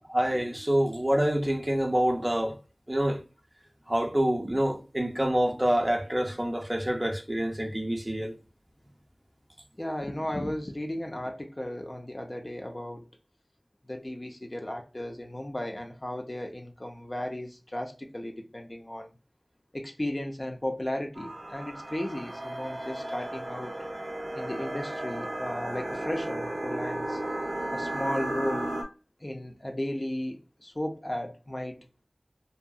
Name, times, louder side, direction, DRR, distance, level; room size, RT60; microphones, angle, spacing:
voice 1, 0.1-2.6 2.9-3.2 3.9-8.4, equal, 20° right, 0.5 m, -26 dB
voice 2, 9.8-13.0 13.9-19.1 19.7-23.7 24.3-27.2 27.7-28.7 29.2-31.8, left 1 dB, 35° left, 0.4 m, -35 dB
sound 1, 21.2-28.8, right 1 dB, 75° right, 0.4 m, -34 dB
2.7 x 2.4 x 2.2 m
wide cardioid pair, 50°, 0 cm